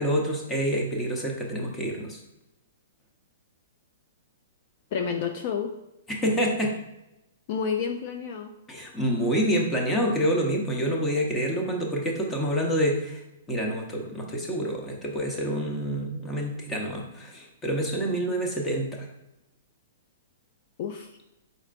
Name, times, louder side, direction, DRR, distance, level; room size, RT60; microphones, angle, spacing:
voice 1, 0.0-2.2 6.1-6.8 8.7-13.2 13.5-19.1, equal, 10° left, 0 dB, 0.8 m, -27 dB
voice 2, 4.9-5.7 7.5-8.5 20.8-21.1, left 6 dB, 45° left, 5 dB, 0.3 m, -29 dB
4.3 x 4.2 x 2.5 m, 0.92 s
hypercardioid pair, 145°, 0 cm